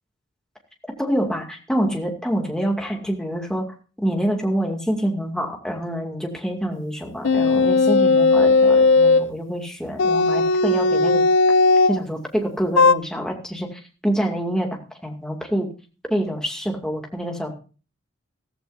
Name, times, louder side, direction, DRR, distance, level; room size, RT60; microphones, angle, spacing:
voice 1, 1.0-3.7 4.0-11.2 11.9-14.7 15.0-15.7 16.1-17.5, equal, 5° left, 1 dB, 2.4 m, -26 dB
sound 1, 7.2-9.3 10.0-12.0 12.8-12.9, left 3 dB, 75° left, 0.6 m, -16 dB
15.5 x 15.0 x 2.7 m, 0.36 s
head